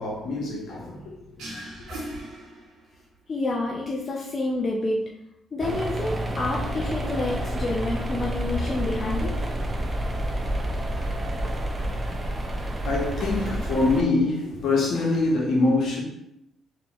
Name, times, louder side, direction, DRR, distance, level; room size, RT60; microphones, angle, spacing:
voice 1, 0.0-1.5 12.8-16.0, left 3 dB, 70° left, 1.1 m, -24 dB
sound 1, 1.4-3.2, right 1 dB, 75° right, 1.1 m, -39 dB
voice 2, 3.3-5.0 5.5-9.3, left 2 dB, 35° left, 0.6 m, -28 dB
sound 2, 5.6-14.0, right 1 dB, 25° right, 0.6 m, -29 dB
3.8 x 3.0 x 3.0 m
cardioid pair, 90°, 0 cm